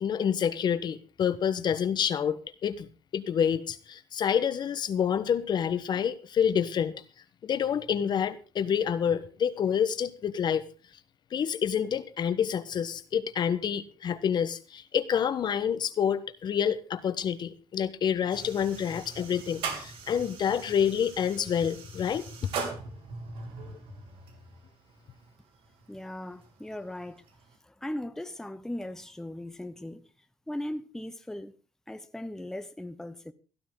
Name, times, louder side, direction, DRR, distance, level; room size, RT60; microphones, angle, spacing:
voice 1, 0.0-6.9 7.4-10.7 11.3-22.5 23.6-23.7, left 8 dB, 55° left, 1.1 m, -28 dB
sound 1, 18.3-27.6, right 4 dB, 80° right, 3.0 m, -41 dB
voice 2, 25.9-27.2 27.6-30.0 30.5-31.5 31.9-33.3, left 1 dB, 5° left, 1.0 m, -38 dB
17.0 x 12.5 x 3.8 m
cardioid pair, 110°, 9 cm